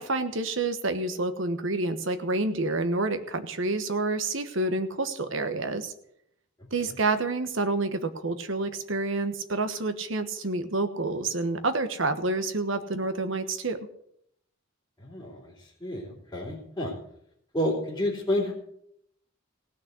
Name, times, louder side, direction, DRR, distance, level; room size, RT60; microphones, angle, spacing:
voice 1, 0.0-5.9 6.7-13.8, right 2 dB, 65° right, 9 dB, 1.3 m, -28 dB
voice 2, 15.0-15.5 15.8-16.9 17.5-18.5, left 1 dB, 15° left, -9 dB, 3.4 m, -29 dB
17.0 x 6.4 x 8.2 m, 0.73 s
head